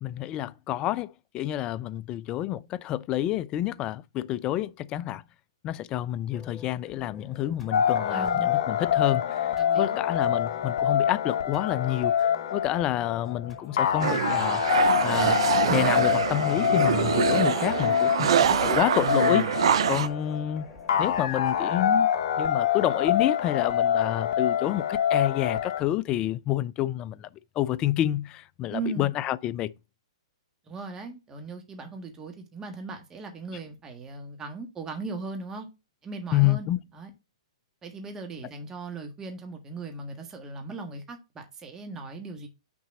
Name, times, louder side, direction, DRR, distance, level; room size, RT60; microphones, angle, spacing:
voice 1, 0.0-5.2 5.6-14.6 15.0-15.4 15.7-19.5 19.9-20.7 21.0-22.1 22.4-27.3 27.6-29.7 36.3-36.8, left 13 dB, 25° left, 0.4 m, -28 dB
sound 1, 6.3-21.9, left 3 dB, 5° left, 3.5 m, -49 dB
sound 2, 7.7-25.8, left 9 dB, 60° left, 0.9 m, -26 dB
voice 2, 8.1-8.5 9.6-10.0 28.7-29.1 30.7-35.7 36.0-36.7 36.9-37.1 37.8-42.5, right 3 dB, 15° right, 1.5 m, -38 dB
sound 3, 14.0-20.1, right 9 dB, 65° right, 0.6 m, -25 dB
6.0 x 4.0 x 6.1 m
hypercardioid pair, 135°, 3 cm